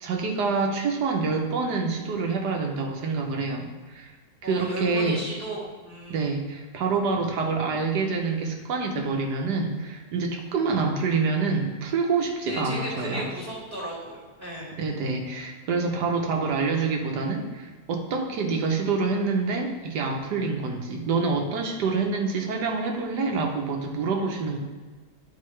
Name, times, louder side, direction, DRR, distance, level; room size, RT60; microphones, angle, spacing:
voice 1, 0.0-4.1 4.4-5.2 6.1-13.2 14.8-24.6, right 4 dB, 80° right, 2 dB, 1.5 m, -27 dB
voice 2, 4.4-6.3 12.4-14.8, right 1 dB, 30° right, -7 dB, 1.8 m, -35 dB
9.6 x 4.6 x 3.2 m, 1.3 s
omnidirectional pair, 1.7 m